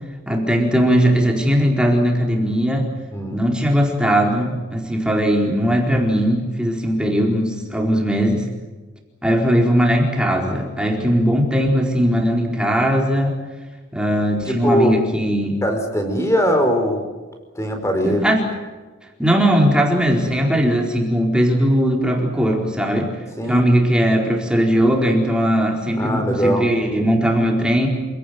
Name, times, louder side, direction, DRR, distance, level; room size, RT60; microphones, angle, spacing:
voice 1, 0.3-2.9 3.3-8.4 9.2-13.3 13.9-15.6 18.0-18.4 19.2-23.1 23.5-27.9, equal, 5° right, 0 dB, 4.4 m, -19 dB
voice 2, 3.1-3.4 14.5-14.9 15.6-17.0 17.5-18.2 23.4-23.6 26.0-26.6, equal, 15° left, 5 dB, 4.6 m, -20 dB
28.0 x 18.0 x 9.4 m, 1.3 s
head